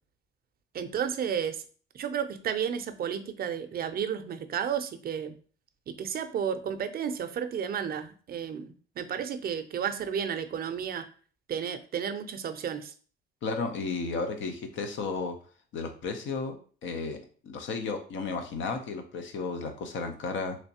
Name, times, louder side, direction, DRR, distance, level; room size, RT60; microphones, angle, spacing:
voice 1, 0.7-1.6 1.9-5.3 5.9-11.1 11.5-12.9, right 8 dB, 50° right, 9 dB, 0.5 m, -32 dB
voice 2, 13.4-15.4 15.7-17.2 17.4-20.6, left 4 dB, 70° left, 6 dB, 0.7 m, -33 dB
3.2 x 3.0 x 2.8 m, 0.41 s
cardioid pair, 90°, 20 cm